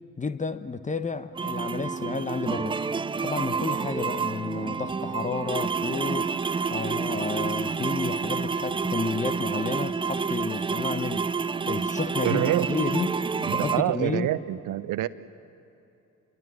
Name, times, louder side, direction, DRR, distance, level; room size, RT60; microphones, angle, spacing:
voice 1, 0.2-2.8 3.2-6.3 6.7-11.3 11.7-13.2 13.5-14.3, left 4 dB, 15° left, 12 dB, 1.0 m, -31 dB
sound 1, 1.3-13.8, right 5 dB, 10° right, 0.5 m, -29 dB
voice 2, 12.2-12.7 13.4-15.1, right 14 dB, 45° right, 16 dB, 0.9 m, -26 dB
28.5 x 23.0 x 6.4 m, 2.8 s
figure-of-eight pair, 50°, 43 cm